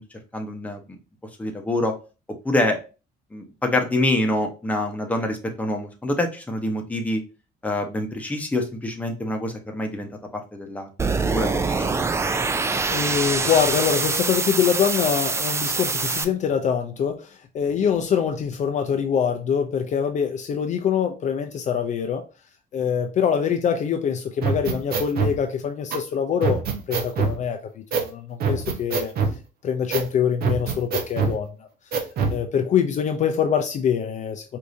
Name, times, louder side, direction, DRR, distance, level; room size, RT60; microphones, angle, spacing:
voice 1, 0.3-0.8 1.4-1.9 2.4-2.8 3.3-7.2 7.6-10.9 11.2-12.1, left 1 dB, 10° left, 0.9 m, -26 dB
sound 1, 11.0-16.2, right 4 dB, 15° right, 0.3 m, -24 dB
voice 2, 12.9-22.2 22.7-29.1 29.6-34.6, left 7 dB, 45° left, 0.5 m, -24 dB
sound 2, 24.4-25.3 25.9-26.0 26.4-27.4 27.9-28.1 28.4-29.4 29.9-30.1 30.4-31.4 31.9-32.4, right 5 dB, 65° right, 0.8 m, -24 dB
4.7 x 2.7 x 2.6 m
cardioid pair, 110°, 17 cm